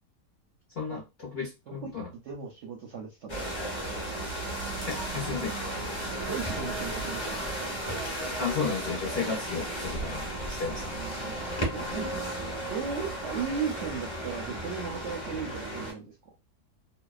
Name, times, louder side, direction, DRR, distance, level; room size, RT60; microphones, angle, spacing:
voice 1, 0.8-2.1 4.9-5.6 8.4-10.9, left 5 dB, 55° left, 0.7 m, -33 dB
voice 2, 1.7-3.7 6.2-7.8 11.0-11.4 11.7-12.1 12.7-16.3, right 6 dB, 65° right, 0.7 m, -37 dB
sound 1, 3.3-15.9, right 1 dB, 25° left, 0.7 m, -34 dB
2.7 x 2.1 x 2.3 m
omnidirectional pair, 1.7 m